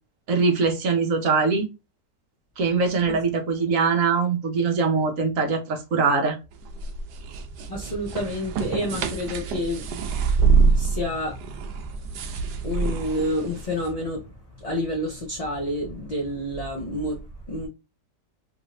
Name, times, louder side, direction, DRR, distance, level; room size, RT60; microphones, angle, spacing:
voice 1, 0.3-1.7 2.6-6.4, right 4 dB, 60° right, 1.1 m, -22 dB
sound 1, 6.5-13.9, right 5 dB, 80° right, 1.2 m, -25 dB
voice 2, 7.7-17.7, left 1 dB, 40° left, 0.6 m, -30 dB
3.2 x 2.5 x 3.1 m
omnidirectional pair, 1.8 m